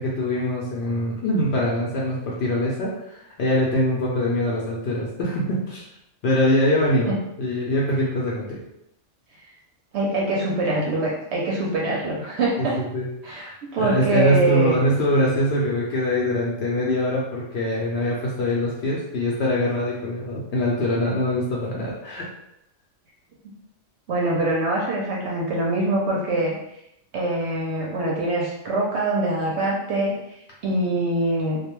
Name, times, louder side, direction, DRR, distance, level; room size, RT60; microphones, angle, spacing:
voice 1, 0.0-5.8 6.2-8.6 12.6-22.2, left 1 dB, 65° left, -4 dB, 0.8 m, -23 dB
voice 2, 9.9-12.8 13.2-14.8 24.1-26.6 27.1-30.1 30.6-31.6, right 2 dB, 70° right, -3 dB, 0.8 m, -24 dB
2.3 x 2.1 x 2.9 m, 0.79 s
omnidirectional pair, 1.3 m